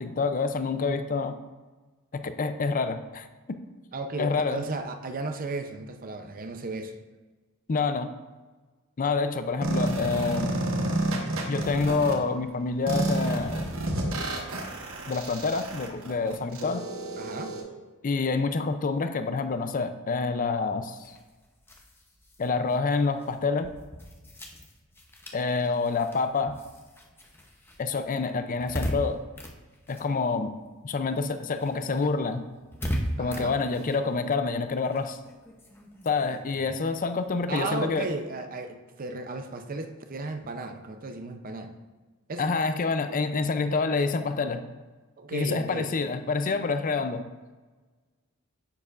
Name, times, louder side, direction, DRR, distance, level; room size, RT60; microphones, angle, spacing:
voice 1, 0.0-1.4 2.1-3.3 4.2-4.6 7.7-8.1 9.0-10.5 11.5-13.7 15.1-16.9 18.0-21.2 22.4-23.7 25.3-26.6 27.8-29.2 29.9-30.5 30.8-32.4 33.2-35.2 36.0-38.1 42.4-44.6 45.3-47.2, left 4 dB, 40° left, 9 dB, 0.5 m, -27 dB
voice 2, 3.9-6.9 17.2-17.6 33.2-33.6 37.5-41.7 42.3-42.5 45.2-45.9, right 3 dB, 40° right, 7 dB, 0.6 m, -34 dB
sound 1, 9.6-12.1 12.9-17.6, right 1 dB, 65° right, 1.2 m, -30 dB
sound 2, 20.9-30.8 31.1-38.0, equal, 10° left, 0.7 m, -39 dB
9.7 x 6.8 x 2.5 m, 1.3 s
head